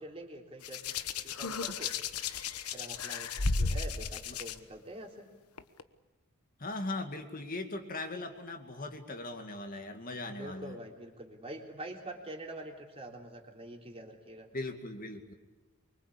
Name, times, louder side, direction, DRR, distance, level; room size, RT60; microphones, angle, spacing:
voice 1, 0.0-1.9 2.7-5.3 10.3-14.5, right 1 dB, 25° right, 1 dB, 3.6 m, -45 dB
Hands, 0.6-4.6 5.6-5.8, left 4 dB, 80° left, 1.2 m, -34 dB
voice 2, 6.6-10.8 14.5-15.3, left 2 dB, 40° left, 5 dB, 2.2 m, -39 dB
25.0 x 24.0 x 8.6 m, 1.2 s
head